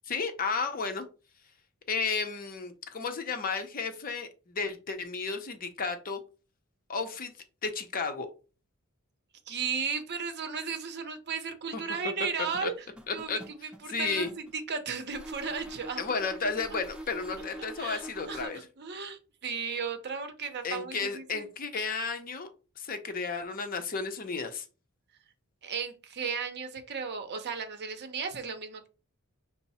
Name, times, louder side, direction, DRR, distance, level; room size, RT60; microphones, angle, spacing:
voice 1, 0.1-1.1 1.9-6.2 6.9-7.3 7.6-8.3 11.7-11.8 12.6-12.7 13.1-13.4 13.9-14.3 16.0-18.6 20.6-22.5 22.8-24.7, left 4 dB, 40° left, 7 dB, 0.7 m, -33 dB
voice 2, 9.5-12.7 13.1-16.0 17.6-21.4 25.6-28.9, right 5 dB, 50° right, 7 dB, 0.7 m, -35 dB
sound 1, 12.5-14.6 15.1-18.5, right 1 dB, 5° right, 0.7 m, -44 dB
5.7 x 2.0 x 4.1 m, 0.34 s
head